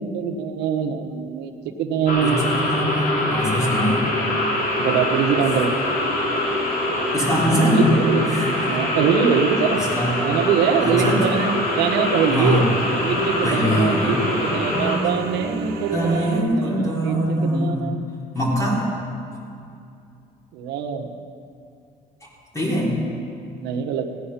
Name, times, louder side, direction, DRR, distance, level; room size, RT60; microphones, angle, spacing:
voice 1, 0.0-1.5 1.8-2.4 4.8-5.9 7.7-8.3 8.7-9.8 10.2-12.6 13.0-18.1 20.5-21.1 23.6-24.1, right 7 dB, 90° right, 4 dB, 1.2 m, -23 dB
sound 1, 2.1-15.0, left 1 dB, 55° left, 3.1 m, -24 dB
voice 2, 2.2-4.0 7.1-7.8 8.3-8.8 9.9-10.1 10.8-11.2 12.3-12.6 13.4-14.2 15.9-17.9 18.3-18.9 22.5-22.9, equal, 20° left, -6 dB, 4.2 m, -22 dB
sound 2, 3.1-16.4, right 5 dB, 65° right, 1.7 m, -34 dB
sound 3, 12.8-16.5, right 1 dB, ahead, 2.0 m, -33 dB
17.0 x 10.0 x 5.7 m, 2.5 s
cardioid pair, 110°, 17 cm